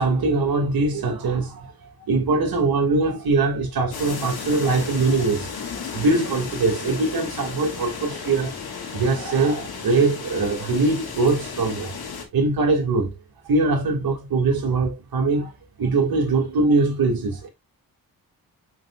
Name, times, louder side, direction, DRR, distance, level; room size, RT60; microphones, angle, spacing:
voice 1, 0.0-1.7 2.1-5.5 5.9-8.5 8.9-11.9 12.3-13.1 13.4-15.5 15.8-17.5, right 3 dB, 75° right, 2.5 m, -22 dB
sound 1, 3.9-12.2, left 5 dB, 90° left, 2.3 m, -34 dB
7.2 x 5.9 x 2.5 m
cardioid pair, 85°, 37 cm